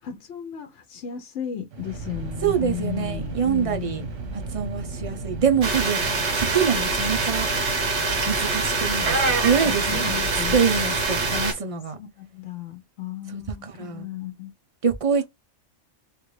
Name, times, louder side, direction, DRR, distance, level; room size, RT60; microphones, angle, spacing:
voice 1, 0.0-4.1 6.0-6.2 9.6-10.6 11.2-11.4 12.0-14.5, left 10 dB, 75° left, 0.9 m, -35 dB
sound 1, 1.7-11.5, right 3 dB, 90° right, 1.3 m, -34 dB
voice 2, 2.4-4.1 4.3-7.5 8.3-10.1 10.5-12.0 13.3-14.1 14.8-15.2, right 6 dB, 40° right, 0.5 m, -25 dB
sound 2, 5.6-11.5, right 3 dB, 70° right, 1.4 m, -24 dB
3.2 x 2.5 x 3.1 m
omnidirectional pair, 1.2 m